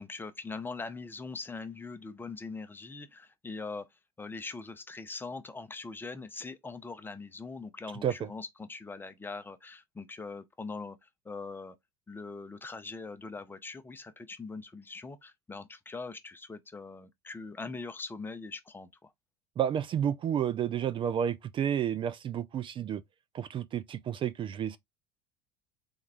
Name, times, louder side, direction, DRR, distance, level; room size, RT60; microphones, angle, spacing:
voice 1, 0.0-11.8 12.1-19.1, left 4 dB, 15° left, 0.7 m, -42 dB
voice 2, 19.6-23.0 23.3-24.8, right 9 dB, 35° right, 0.5 m, -31 dB
4.0 x 3.5 x 3.3 m
supercardioid pair, 100°, 14 cm